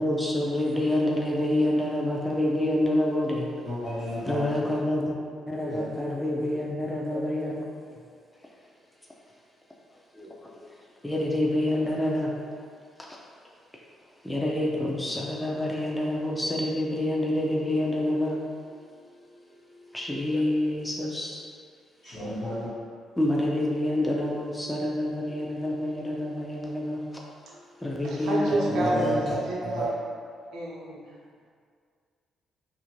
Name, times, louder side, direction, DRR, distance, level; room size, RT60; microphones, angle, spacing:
voice 1, 0.0-3.5 4.3-5.1 5.5-7.6 10.2-10.3 11.0-12.3 14.2-18.4 19.9-21.4 23.2-27.0 27.8-29.2, left 1 dB, 10° left, -3 dB, 0.4 m, -27 dB
voice 2, 3.6-4.5 5.7-5.8 22.0-22.7 28.8-29.2 29.6-29.8, right 1 dB, 60° left, -12 dB, 1.0 m, -31 dB
voice 3, 28.0-29.9 30.5-31.2, right 1 dB, 80° right, -4 dB, 0.6 m, -30 dB
2.5 x 2.4 x 3.0 m, 2.1 s
cardioid pair, 90°, 0 cm